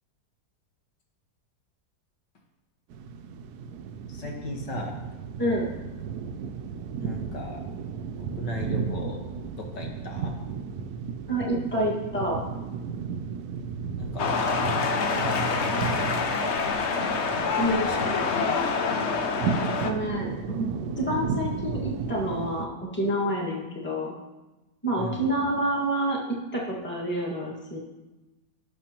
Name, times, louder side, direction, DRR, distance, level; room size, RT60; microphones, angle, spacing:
sound 1, 2.9-22.7, right 6 dB, 75° right, 1.1 m, -34 dB
voice 1, 4.1-5.0 7.0-7.6 8.2-9.2 9.5-10.3 14.0-16.9 17.6-18.1 18.4-18.6 25.0-25.3, left 1 dB, 90° left, 0 dB, 2.2 m, -37 dB
voice 2, 11.3-12.4 17.6-17.9 19.8-24.1 24.8-26.2 26.5-27.8, right 1 dB, 5° left, -4 dB, 1.7 m, -28 dB
sound 2, 14.2-19.9, left 4 dB, 50° left, 0.9 m, -26 dB
17.5 x 6.4 x 3.0 m, 1.1 s
omnidirectional pair, 1.8 m